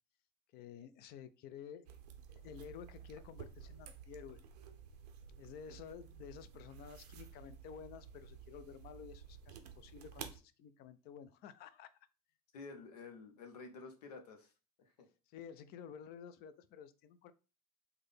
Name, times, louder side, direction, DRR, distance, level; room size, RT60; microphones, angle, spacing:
voice 1, 0.5-1.9 2.3-4.4 5.4-11.9 15.3-17.3, left 8 dB, 55° left, 13 dB, 0.4 m, -52 dB
sound 1, 1.9-10.4, right 8 dB, 85° right, 0.5 m, -53 dB
voice 2, 12.5-14.5 14.8-15.1, left 4 dB, 85° left, 6 dB, 0.7 m, -51 dB
3.7 x 2.2 x 3.4 m, 0.33 s
hypercardioid pair, 80°, 20 cm